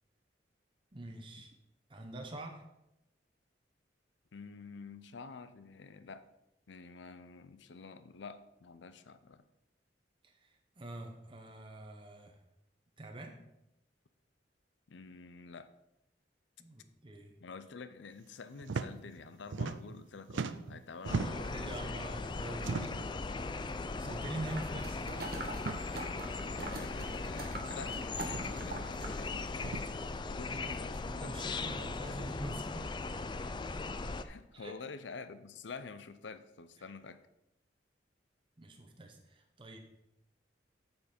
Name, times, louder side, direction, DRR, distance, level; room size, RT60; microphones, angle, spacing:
voice 1, 0.9-1.5 1.9-2.6 10.2-12.4 13.0-13.4 16.6-17.4 21.2-23.2 24.0-25.3 30.5-30.8 31.0-33.1 34.5-34.7 38.6-39.8, right 1 dB, 30° right, 2 dB, 0.9 m, -45 dB
voice 2, 4.3-6.3 6.7-9.4 14.9-15.7 17.4-22.1 22.8-22.9 26.6-29.8 30.3-31.9 34.2-37.2, left 4 dB, 80° left, 12 dB, 0.6 m, -49 dB
sound 1, 18.6-18.9 19.2-20.0 20.3-21.6 22.6-23.1 24.0-24.2 24.5-24.6 25.5-25.8 27.0-27.1 28.2-28.5 29.6-29.8, right 4 dB, 90° right, 0.5 m, -38 dB
sound 2, 21.1-34.2, left 3 dB, 25° left, 0.4 m, -39 dB
Noise vibration table, 24.5-29.2 29.6-29.7, right 2 dB, 55° right, 1.2 m, -44 dB
8.4 x 7.0 x 4.3 m, 0.85 s
head